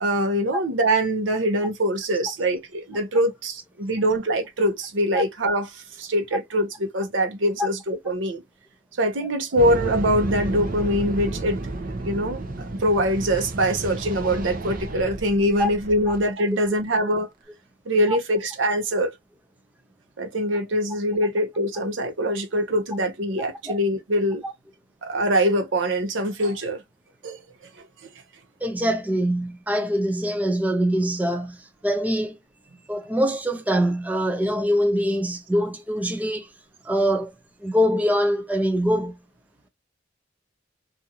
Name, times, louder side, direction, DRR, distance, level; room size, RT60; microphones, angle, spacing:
voice 1, 0.0-8.4 9.0-11.6 12.0-17.3 17.9-19.1 20.2-24.4 25.0-26.8 27.2-27.4 27.8-27.9, equal, 80° right, 0.8 m, -23 dB
sound 1, 9.6-16.3, right 2 dB, 45° right, 0.6 m, -32 dB
voice 2, 28.6-31.6 31.8-32.4 32.9-36.5 36.9-37.3 37.6-39.1, equal, 10° right, 0.4 m, -23 dB
2.6 x 2.4 x 2.7 m
head